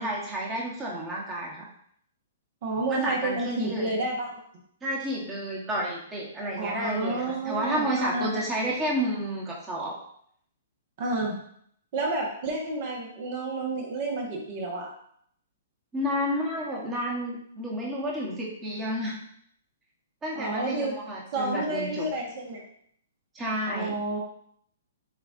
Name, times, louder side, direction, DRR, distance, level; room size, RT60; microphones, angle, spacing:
voice 1, 0.0-1.6 2.9-3.9 4.8-10.0 15.9-19.2 20.2-22.0 23.3-24.0, equal, 15° right, -5 dB, 1.1 m, -30 dB
voice 2, 2.6-4.4 6.6-8.4 11.0-11.4 11.9-14.9 20.3-21.0 21.3-22.6 23.7-24.2, right 2 dB, 50° right, 0 dB, 1.2 m, -30 dB
6.9 x 2.5 x 2.5 m, 0.67 s
hypercardioid pair, 130°, 0 cm